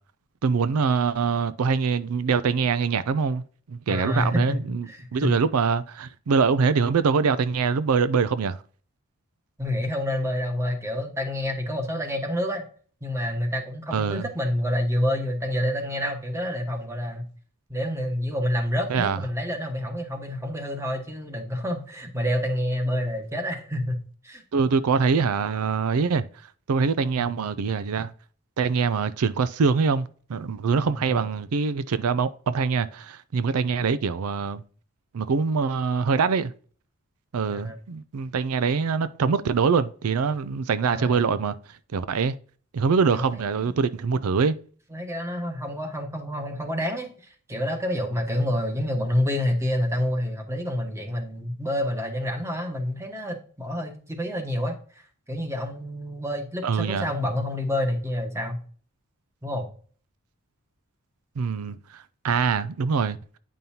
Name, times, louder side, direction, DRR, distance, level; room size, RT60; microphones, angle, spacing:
voice 1, 0.4-3.4 3.7-4.9 5.1-8.6 13.9-14.2 18.9-19.2 24.5-26.2 26.7-28.1 28.6-34.6 35.1-36.5 37.3-41.5 41.9-42.3 42.7-44.6 56.6-57.1 61.4-63.2, right 5 dB, 85° right, 0.4 m, -24 dB
voice 2, 3.9-5.3 9.6-12.6 13.0-17.3 17.7-24.4 27.2-27.4 30.9-31.3 37.5-37.8 40.9-41.2 43.1-43.7 44.9-54.8 55.3-58.6 59.4-59.7, left 1 dB, 15° right, 1.3 m, -28 dB
9.3 x 5.3 x 2.8 m
head